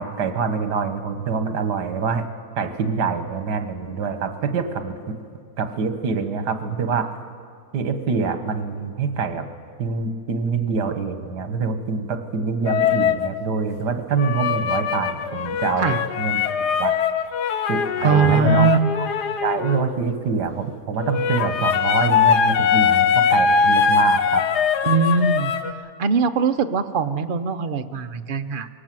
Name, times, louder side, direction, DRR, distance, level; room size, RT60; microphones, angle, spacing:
voice 1, 0.0-2.3 2.6-5.1 5.6-7.1 7.7-9.5 9.8-16.4 16.8-16.9 17.7-18.7 19.4-24.4, right 5 dB, 80° right, 8 dB, 1.9 m, -25 dB
sound 1, 12.7-13.3 14.2-19.9 21.0-25.7, left 6 dB, 80° left, 1.4 m, -21 dB
voice 2, 18.0-18.8 24.8-25.5 26.0-28.7, right 5 dB, 45° right, 8 dB, 0.7 m, -21 dB
23.0 x 18.5 x 7.6 m, 2.1 s
omnidirectional pair, 1.8 m